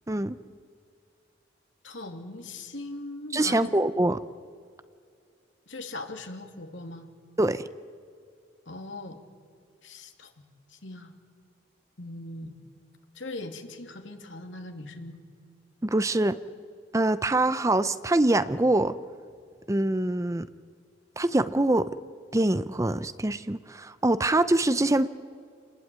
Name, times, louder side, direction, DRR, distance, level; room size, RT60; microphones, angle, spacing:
voice 1, 0.1-0.4 3.3-4.2 7.4-7.6 15.8-16.4 16.9-19.0 19.7-20.5 21.2-22.0 22.3-25.1, right 2 dB, 15° right, 13 dB, 0.6 m, -24 dB
voice 2, 1.8-3.7 5.7-7.1 8.7-9.2 9.8-10.3 10.7-11.1 12.0-12.5 13.1-15.2, left 2 dB, 80° left, 4 dB, 2.8 m, -40 dB
28.5 x 19.5 x 9.4 m, 2.4 s
head